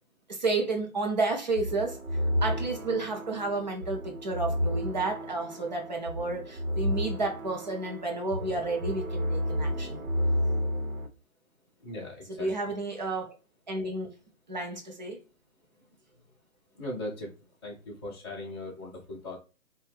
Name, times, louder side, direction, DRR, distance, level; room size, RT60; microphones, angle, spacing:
voice 1, 0.3-2.0 2.4-10.0 12.3-13.3 13.7-14.1 14.5-15.2, right 3 dB, 35° right, 0.6 m, -31 dB
sound 1, 1.6-11.1, equal, 80° right, 0.9 m, -31 dB
voice 2, 11.8-12.5 16.7-17.3 17.6-19.4, left 1 dB, 20° left, 0.5 m, -39 dB
3.1 x 2.2 x 3.2 m
figure-of-eight pair, 150°, 41 cm